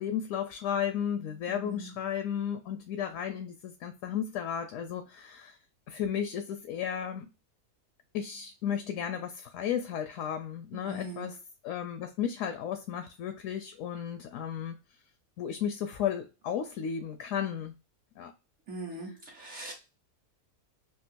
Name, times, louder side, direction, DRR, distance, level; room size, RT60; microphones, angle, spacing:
voice 1, 0.0-5.6 5.9-7.3 8.1-11.3 11.6-14.8 15.4-17.7 18.2-18.3, left 8 dB, 70° left, 0.9 m, -34 dB
voice 2, 1.5-1.9 10.7-11.4 18.7-19.7, right 1 dB, 55° right, 1.0 m, -41 dB
3.7 x 2.4 x 2.5 m
omnidirectional pair, 1.6 m